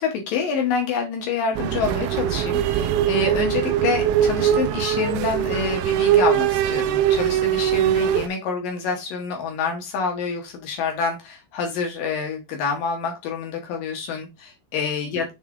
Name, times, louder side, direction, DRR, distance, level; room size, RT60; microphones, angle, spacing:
voice 1, 0.0-15.3, left 5 dB, 70° left, 2 dB, 2.1 m, -27 dB
sound 1, 1.6-8.3, right 10 dB, 85° right, 2.8 m, -21 dB
7.3 x 3.6 x 3.6 m, 0.23 s
omnidirectional pair, 5.4 m